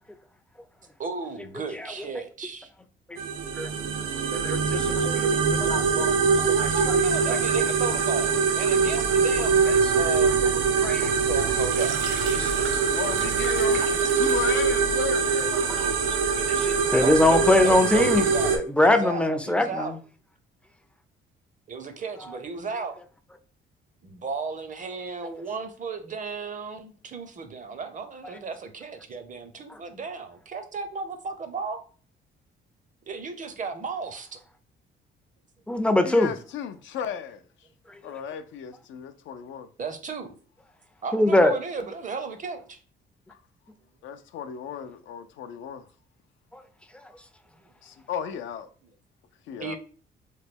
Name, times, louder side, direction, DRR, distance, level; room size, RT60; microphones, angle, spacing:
voice 1, 1.0-2.7 6.4-10.5 10.9-12.0 16.2-18.5 18.8-20.0 21.7-23.0 24.0-31.8 33.1-34.3 39.8-40.4 41.0-42.8 47.6-47.7 49.6-49.8, right 4 dB, 40° right, 0.6 m, -35 dB
sound 1, 3.2-18.6, right 5 dB, 85° right, 0.5 m, -23 dB
voice 2, 4.3-6.1 10.8-11.1 12.4-12.5 15.8-15.9 16.5-20.0 35.7-36.3 41.1-41.6 46.5-46.6, left 1 dB, 5° left, 0.4 m, -22 dB
sound 2, 11.5-14.8, right 4 dB, 70° right, 1.0 m, -38 dB
voice 3, 13.0-13.8 14.1-16.0 36.0-37.4 38.0-39.7 43.3-43.4 44.0-45.9 47.8-48.7 49.5-49.8, left 8 dB, 75° left, 0.4 m, -35 dB
3.1 x 2.2 x 3.4 m
cardioid pair, 90°, 20 cm